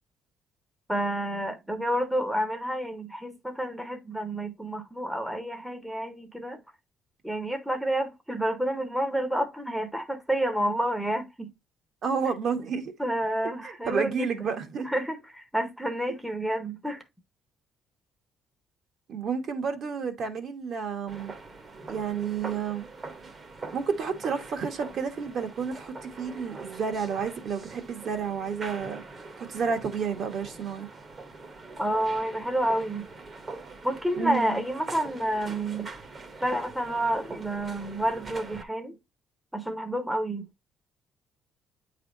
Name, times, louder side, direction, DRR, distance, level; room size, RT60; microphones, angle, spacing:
voice 1, 0.9-6.6 7.2-11.5 13.0-14.5 14.8-17.0 31.8-33.1 33.8-35.9 36.4-38.9 39.5-40.5, right 1 dB, 5° right, 0.9 m, -29 dB
voice 2, 12.0-12.9 13.6-14.9 19.1-21.3 21.9-22.9 23.7-29.0 29.4-30.9 34.2-34.6, right 6 dB, 50° right, 1.3 m, -30 dB
sound 1, 21.1-38.6, right 3 dB, 25° right, 1.0 m, -43 dB
8.8 x 3.3 x 3.8 m
cardioid pair, 150°, 0 cm